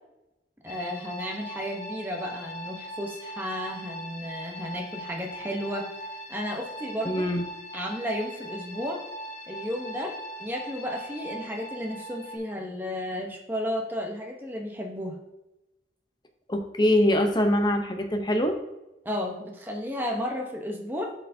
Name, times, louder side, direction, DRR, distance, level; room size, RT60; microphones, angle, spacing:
voice 1, 0.6-5.9 6.3-7.3 7.7-9.0 9.5-15.2 19.0-21.1, equal, 10° right, 1 dB, 0.8 m, -33 dB
sound 1, 0.7-12.4, equal, 40° left, 1.5 m, -40 dB
voice 2, 7.1-7.5 16.5-18.6, left 1 dB, 25° left, 5 dB, 0.7 m, -23 dB
11.0 x 4.5 x 2.7 m, 0.95 s
head